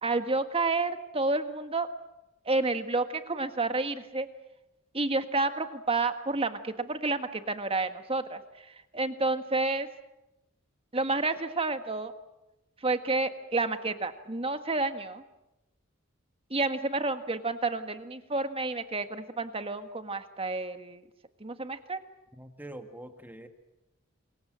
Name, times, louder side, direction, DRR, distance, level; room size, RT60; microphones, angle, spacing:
voice 1, 0.0-1.9 2.4-4.3 4.9-9.9 10.9-12.1 12.8-15.2 16.5-21.0 21.4-22.0, right 3 dB, 30° right, 9 dB, 1.6 m, -30 dB
voice 2, 22.3-23.5, right 1 dB, 10° right, 6 dB, 1.7 m, -44 dB
27.0 x 23.0 x 7.6 m, 0.95 s
head